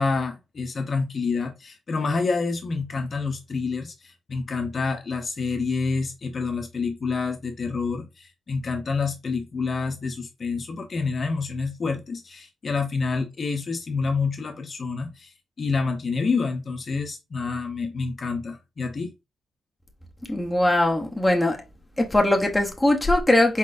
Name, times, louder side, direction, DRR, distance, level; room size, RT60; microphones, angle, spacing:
voice 1, 0.0-15.3 15.6-19.1, left 4 dB, 40° left, 0.7 m, -28 dB
voice 2, 20.3-21.6 22.0-23.6, left 1 dB, 5° left, 0.7 m, -21 dB
4.4 x 3.8 x 2.5 m
wide cardioid pair, 150°, 0 cm